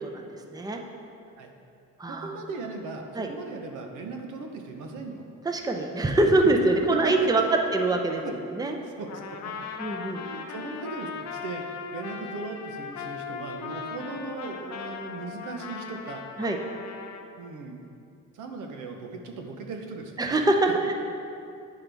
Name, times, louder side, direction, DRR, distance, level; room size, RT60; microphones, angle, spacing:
voice 1, 0.0-0.8 2.0-2.3 3.2-3.3 5.4-7.4 7.7-8.2 8.5-8.8 9.8-10.2 16.4-16.6 20.2-20.9, right 2 dB, 15° right, 3 dB, 0.7 m, -24 dB
voice 2, 2.1-5.2 6.9-7.5 8.2-8.3 9.0-9.7 10.1-16.2 17.4-17.8 18.3-20.1, right 3 dB, 80° right, 3 dB, 0.8 m, -38 dB
Trumpet, 9.1-17.3, left 6 dB, 65° left, 0.7 m, -38 dB
9.3 x 5.7 x 3.4 m, 2.5 s
cardioid pair, 90°, 30 cm